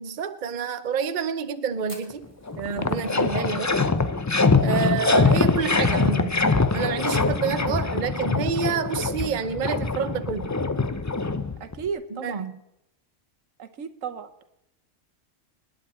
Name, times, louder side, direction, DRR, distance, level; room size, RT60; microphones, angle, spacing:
voice 1, 0.0-2.3 2.6-3.8 4.6-6.4 6.7-10.5 12.1-12.6, right 6 dB, 40° right, 10 dB, 0.9 m, -28 dB
Fire, 1.9-6.4 6.6-6.7 7.0-7.1 7.5-7.9 8.4-8.5 9.6-9.7, right 1 dB, 25° right, 3.3 m, -51 dB
sound 1, 2.1-2.2 2.5-11.9, left 3 dB, 30° left, 0.3 m, -23 dB
voice 2, 11.6-12.4 13.6-14.4, right 6 dB, 85° right, 10 dB, 1.3 m, -34 dB
26.0 x 10.5 x 4.3 m, 0.84 s
omnidirectional pair, 1.3 m